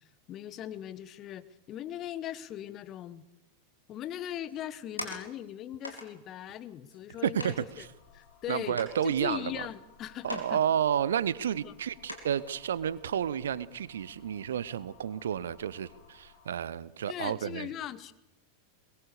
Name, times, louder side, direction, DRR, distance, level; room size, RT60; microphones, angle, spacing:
voice 1, 0.3-3.2 3.9-7.9 8.1-10.6 11.6-11.7 17.1-18.1, left 11 dB, 35° left, 15 dB, 1.1 m, -39 dB
sound 1, 4.5-5.5 5.8-6.1 6.9-7.0 7.4-7.6 8.2-8.3 8.7-9.7 10.2-10.6 10.8-10.9 11.5-11.6 12.1-12.5 13.0-13.2, left 1 dB, 90° left, 3.9 m, -41 dB
voice 2, 7.2-7.9 8.5-9.6 10.2-17.7, right 9 dB, 65° right, 19 dB, 0.9 m, -31 dB
sound 2, 7.3-16.6, left 6 dB, 50° left, 4.2 m, -58 dB
22.5 x 21.5 x 6.8 m, 0.92 s
figure-of-eight pair, 90°, 0 cm